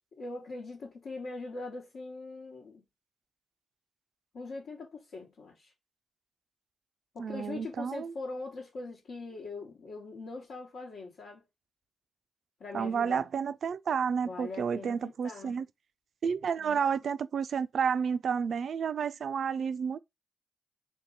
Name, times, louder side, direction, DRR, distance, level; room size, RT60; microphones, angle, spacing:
voice 1, 0.2-2.8 4.3-5.7 7.1-11.4 12.6-13.3 14.2-15.6 16.6-16.8, left 3 dB, 75° left, 1.1 m, -42 dB
voice 2, 7.2-8.1 12.7-15.7 16.2-20.0, right 6 dB, 70° right, 0.3 m, -31 dB
3.8 x 2.8 x 3.8 m
hypercardioid pair, 40°, 0 cm